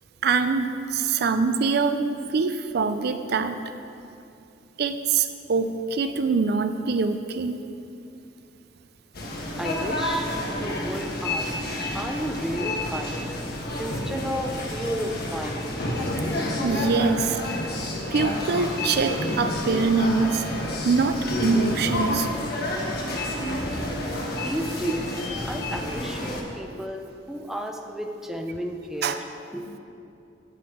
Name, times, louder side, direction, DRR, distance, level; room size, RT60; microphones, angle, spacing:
voice 1, 0.2-3.6 4.8-7.6 16.6-17.4 18.1-20.4 20.8-22.3 29.0-29.2, right 4 dB, 60° right, 9 dB, 0.4 m, -24 dB
sound 1, 9.1-26.4, left 1 dB, 55° left, 1.3 m, -29 dB
voice 2, 9.6-10.3 10.6-11.6 11.9-13.3 13.8-15.7 24.4-25.1 25.4-29.2 29.5-29.6, equal, ahead, 3 dB, 0.6 m, -32 dB
8.5 x 5.4 x 7.8 m, 2.7 s
head